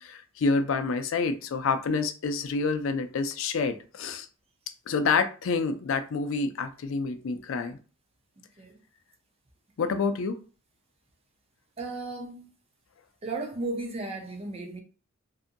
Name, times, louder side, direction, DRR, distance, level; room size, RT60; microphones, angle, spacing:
voice 1, 0.0-4.3 4.9-7.8 9.8-10.4, left 4 dB, 70° left, 0.4 m, -28 dB
voice 2, 11.8-12.5 13.2-14.8, right 2 dB, 30° right, 0.6 m, -35 dB
2.7 x 2.5 x 2.5 m
head